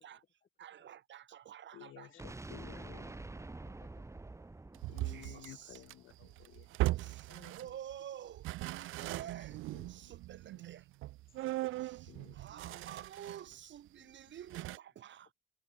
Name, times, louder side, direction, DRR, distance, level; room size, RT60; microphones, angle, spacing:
voice 1, 0.6-2.1 5.0-5.8 6.9-9.6 9.9-10.9 11.6-15.3, right 10 dB, 65° right, 5.3 m, -50 dB
voice 2, 1.7-3.2 4.9-6.8 9.0-10.1 10.5-10.6 12.1-12.9 14.0-14.1, left 14 dB, 85° left, 4.0 m, -55 dB
sound 1, 2.2-6.1, right 2 dB, 15° right, 1.2 m, -48 dB
voice 3, 2.9-5.0 7.0-7.8 14.7-14.8, left 7 dB, 45° left, 4.7 m, -65 dB
sound 2, 4.7-7.9 8.3-13.5 13.9-14.0 14.5-14.8, right 17 dB, 90° right, 0.8 m, -39 dB
cardioid pair, 90°, 20 cm